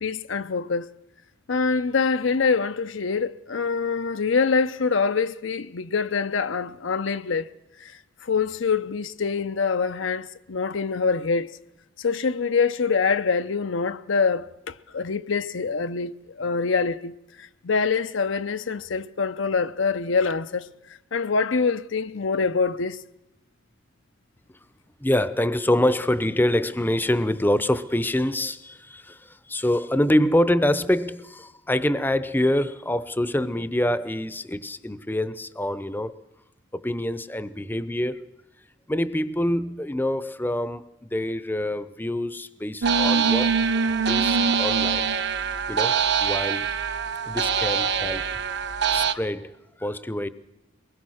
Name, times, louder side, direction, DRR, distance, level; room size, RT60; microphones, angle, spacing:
voice 1, 0.0-0.9 1.5-7.5 7.8-7.9 8.2-11.5 12.0-20.7 21.1-23.0, left 5 dB, 75° left, 0.7 m, -25 dB
voice 2, 25.0-36.1 36.7-38.3 38.9-43.6 44.1-45.1 45.7-46.7 47.2-48.7 48.9-50.3, left 1 dB, 10° left, 0.7 m, -25 dB
sound 1, 42.8-49.1, right 6 dB, 60° right, 0.9 m, -23 dB
22.5 x 20.5 x 6.4 m
head